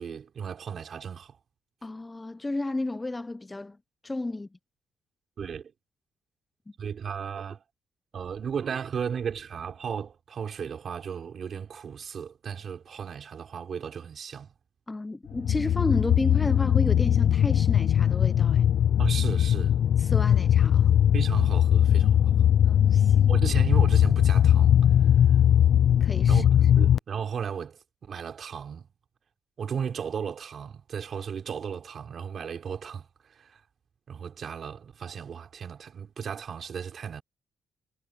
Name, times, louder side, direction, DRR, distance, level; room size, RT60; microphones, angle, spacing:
voice 1, 0.0-1.4 5.4-5.7 6.8-7.6 8.1-14.5 19.0-19.8 21.1-22.4 23.3-24.8 26.3-28.9 29.6-33.6 34.1-37.2, right 7 dB, 50° right, 4.1 m, -35 dB
voice 2, 1.8-3.8 4.0-4.5 14.9-18.7 20.0-20.9 22.6-23.3 26.0-26.5, left 2 dB, 15° left, 0.8 m, -32 dB
sound 1, 15.3-27.0, left 10 dB, 65° left, 0.3 m, -20 dB
cardioid pair, 90°, 0 cm